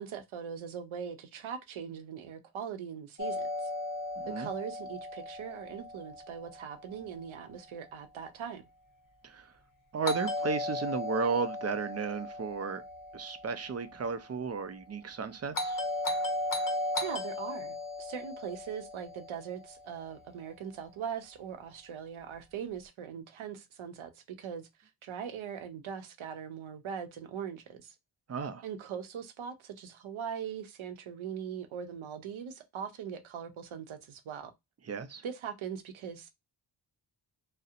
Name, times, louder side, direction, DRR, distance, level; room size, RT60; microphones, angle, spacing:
voice 1, 0.0-3.7 4.4-8.6 17.0-27.9 28.6-34.5 35.2-36.3, right 8 dB, 80° right, 0.7 m, -41 dB
Doorbell, 3.2-7.2 10.0-14.3 15.5-20.0, left 2 dB, 45° left, 0.8 m, -36 dB
voice 2, 4.2-4.5 9.2-9.5 9.9-12.8 13.1-15.8 28.3-28.6 34.9-35.2, right 5 dB, 35° right, 0.4 m, -34 dB
2.7 x 2.1 x 2.4 m
cardioid pair, 65°, 47 cm